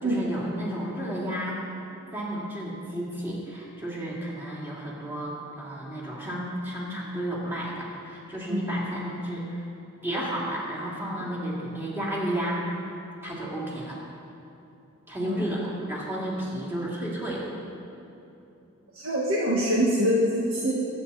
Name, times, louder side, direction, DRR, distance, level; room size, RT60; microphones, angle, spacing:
voice 1, 0.0-1.6 2.1-9.6 10.0-12.8 13.2-14.0 15.1-17.5, equal, 10° right, -6 dB, 2.7 m, -32 dB
voice 2, 18.9-20.7, equal, 75° right, -5 dB, 1.6 m, -24 dB
23.5 x 8.2 x 4.2 m, 2.9 s
head